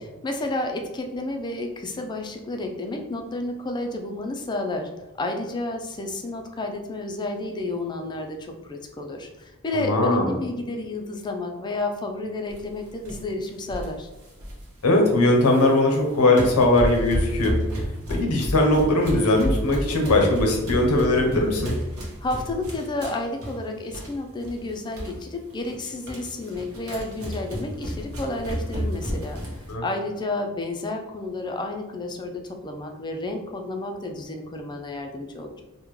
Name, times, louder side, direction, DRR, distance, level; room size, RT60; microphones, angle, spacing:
voice 1, 0.0-4.9 5.2-14.1 22.2-29.4 29.8-35.6, left 2 dB, 20° left, 3 dB, 0.3 m, -31 dB
voice 2, 9.7-10.3 14.8-17.6 18.1-21.8 29.7-29.8, left 2 dB, 85° left, 1 dB, 0.7 m, -20 dB
sound 1, 12.5-12.7 13.0-13.2 13.7-14.7 15.1-16.0 16.3-24.1 24.4-24.6 24.9-25.2 25.5-29.7, equal, 70° right, 1.0 m, -31 dB
3.6 x 2.1 x 3.0 m, 1.0 s
head